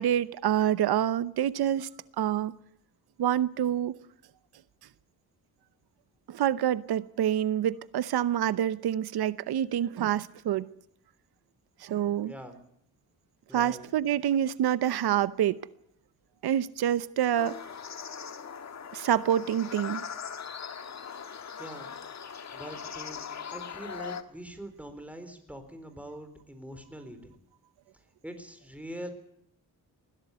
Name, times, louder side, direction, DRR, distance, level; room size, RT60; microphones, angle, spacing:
voice 1, 0.0-1.9 2.2-2.6 3.2-4.0 6.3-10.7 11.8-12.3 13.5-15.6 16.4-17.6 18.9-20.1, right 10 dB, 90° right, 0.9 m, -27 dB
voice 2, 12.2-12.6 13.5-13.8 21.3-21.9 22.5-27.4 28.2-29.1, right 1 dB, 5° right, 3.9 m, -43 dB
sound 1, 17.4-24.2, left 7 dB, 45° left, 1.6 m, -40 dB
21.0 x 16.0 x 8.1 m
wide cardioid pair, 145°, 37 cm